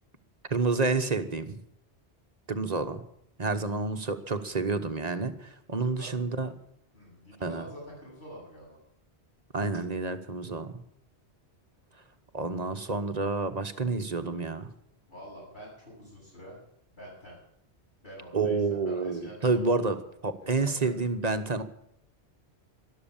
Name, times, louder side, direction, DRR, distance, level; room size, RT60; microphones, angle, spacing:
voice 1, 0.5-1.6 2.5-3.0 3.4-6.5 7.4-7.7 9.5-10.7 12.3-14.7 18.3-21.6, right 3 dB, 40° right, 9 dB, 1.2 m, -29 dB
voice 2, 6.9-8.8 15.1-16.6 16.9-17.4 18.0-20.1 20.4-21.1, equal, 55° left, -10 dB, 8.4 m, -47 dB
13.0 x 12.0 x 8.7 m, 0.73 s
omnidirectional pair, 1.1 m